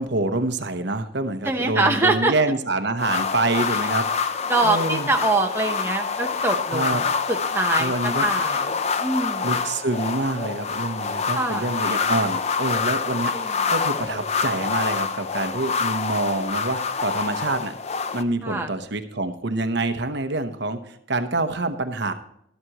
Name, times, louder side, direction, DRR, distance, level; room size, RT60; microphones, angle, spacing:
voice 1, 0.0-4.3 4.6-5.1 6.7-7.0 7.8-8.2 9.4-17.7 18.1-22.1, right 2 dB, 55° right, 8 dB, 0.9 m, -26 dB
voice 2, 1.4-2.3 3.7-3.8 4.5-7.9 8.2-9.6 11.3-11.7 13.3-13.7 18.4-18.7, right 2 dB, 10° right, 2 dB, 0.9 m, -24 dB
sound 1, 3.0-18.2, left 5 dB, 30° left, 0.5 m, -26 dB
12.5 x 12.5 x 2.9 m, 0.73 s
head